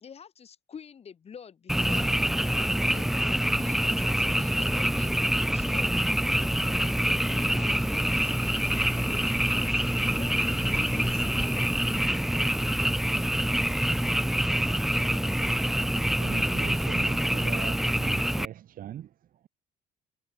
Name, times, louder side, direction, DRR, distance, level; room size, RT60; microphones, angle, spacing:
voice 1, 0.0-5.9 7.3-9.9 10.1-11.8, left 7 dB, 35° left, 1.8 m, -46 dB
Frog, 1.7-18.5, equal, ahead, 0.5 m, -26 dB
voice 2, 16.2-19.5, right 11 dB, 55° right, 1.7 m, -41 dB
cardioid pair, 110°, 17 cm